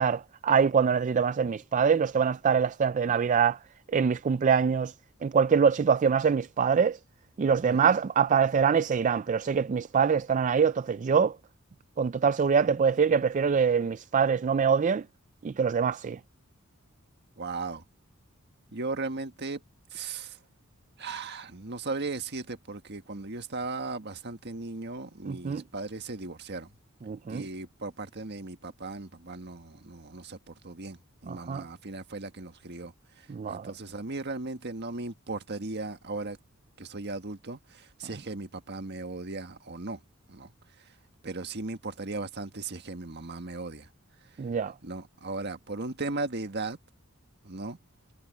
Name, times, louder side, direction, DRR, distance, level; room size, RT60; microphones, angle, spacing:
voice 1, 0.0-3.6 3.9-4.9 5.2-7.0 7.4-11.4 12.0-15.0 15.4-16.2 25.3-25.6 27.1-27.5 31.3-31.6 33.3-33.7 44.4-44.7, right 6 dB, 35° right, 0.3 m, -24 dB
voice 2, 17.4-17.8 18.7-19.6 19.9-20.4 21.0-26.7 27.3-32.9 33.5-36.4 36.8-40.0 40.3-40.5 41.2-43.9 44.8-46.8 47.4-47.8, right 3 dB, 50° right, 1.6 m, -37 dB
head